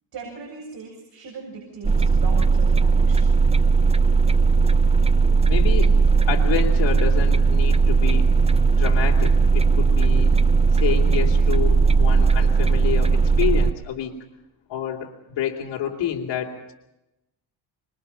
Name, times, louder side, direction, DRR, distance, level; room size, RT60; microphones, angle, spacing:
voice 1, 0.1-3.3, right 5 dB, 60° right, -1 dB, 7.7 m, -39 dB
sound 1, 1.8-13.7, right 4 dB, 15° right, 0.7 m, -17 dB
voice 2, 5.5-5.9 6.3-8.3 8.7-10.4 10.7-14.1 14.7-16.7, left 9 dB, 80° left, -2 dB, 3.1 m, -28 dB
26.0 x 23.0 x 5.6 m, 0.91 s
cardioid pair, 105°, 42 cm